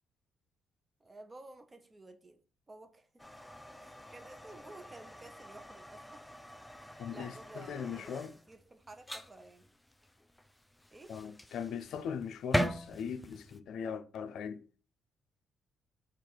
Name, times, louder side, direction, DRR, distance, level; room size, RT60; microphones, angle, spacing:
voice 1, 1.0-2.4 2.7-3.2 3.8-6.3 6.7-8.2 8.5-9.7 10.9-11.2, right 2 dB, 25° right, 0.7 m, -53 dB
sound 1, 3.2-13.6, equal, 5° left, 0.4 m, -41 dB
voice 2, 7.0-8.3 11.1-14.7, left 7 dB, 75° left, 0.4 m, -40 dB
4.4 x 2.5 x 4.7 m
cardioid pair, 90°, 0 cm